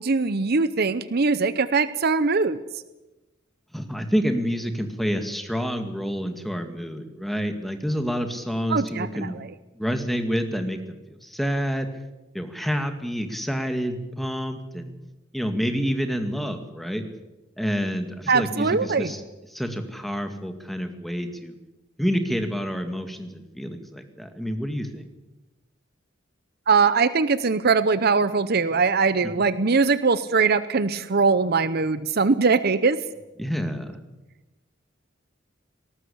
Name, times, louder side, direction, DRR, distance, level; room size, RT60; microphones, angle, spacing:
voice 1, 0.0-2.6 8.7-9.5 18.3-19.1 26.7-33.0, right 4 dB, 50° right, 15 dB, 0.8 m, -21 dB
voice 2, 3.7-9.4 9.8-11.9 12.3-14.9 15.3-17.0 17.6-19.2 19.5-21.6 22.0-25.1 33.4-34.0, equal, ahead, 7 dB, 2.0 m, -28 dB
19.0 x 18.5 x 8.6 m, 1.1 s
head